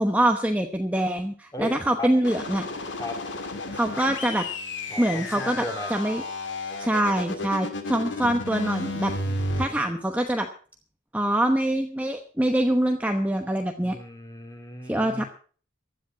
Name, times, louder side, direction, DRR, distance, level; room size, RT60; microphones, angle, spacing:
voice 1, 0.0-2.6 3.7-4.5 5.0-5.6 5.9-6.2 6.8-9.1 9.6-10.5 11.1-14.0 14.9-15.2, right 1 dB, 10° right, 4 dB, 1.0 m, -24 dB
sound 1, 2.2-9.6, left 2 dB, 65° left, 2.2 m, -32 dB
voice 2, 4.9-5.9 8.2-8.4 9.2-9.9 13.8-15.3, left 1 dB, 20° left, 4 dB, 3.0 m, -36 dB
15.5 x 10.0 x 5.8 m, 0.42 s
head